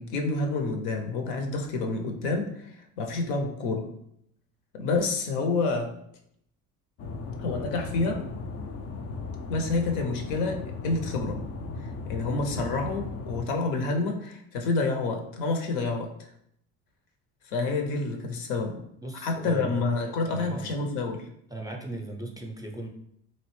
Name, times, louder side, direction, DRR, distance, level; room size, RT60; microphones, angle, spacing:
voice 1, 0.0-3.9 4.7-5.9 7.4-8.2 9.5-11.4 12.1-16.1 17.5-18.8 19.2-21.3, left 3 dB, 70° left, 4 dB, 0.7 m, -28 dB
sound 1, 7.0-13.4, left 3 dB, 35° left, 0.4 m, -36 dB
voice 2, 19.0-19.8 20.2-20.7 21.5-22.9, right 2 dB, 10° right, 0 dB, 0.5 m, -37 dB
3.0 x 2.5 x 3.1 m, 0.73 s
hypercardioid pair, 55°, 45 cm